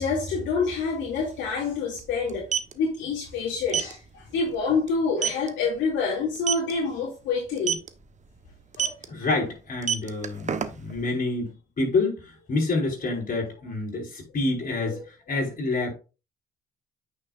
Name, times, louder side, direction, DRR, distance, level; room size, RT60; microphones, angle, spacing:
voice 1, 0.0-7.8 8.8-8.9 14.9-15.0, left 4 dB, 65° left, 2.6 m, -27 dB
sound 1, 0.7-0.8 1.0-1.2 2.2-2.7 3.7-3.9 4.4-4.5 4.9-5.0 5.2-5.5 6.4-6.7 7.6-7.9 8.7-9.1 9.7-11.0, right 7 dB, 35° right, 1.1 m, -26 dB
voice 2, 9.1-11.5 11.8-15.0 15.3-15.9, left 3 dB, 40° left, 4.7 m, -27 dB
9.0 x 6.6 x 2.5 m
hypercardioid pair, 60°, 21 cm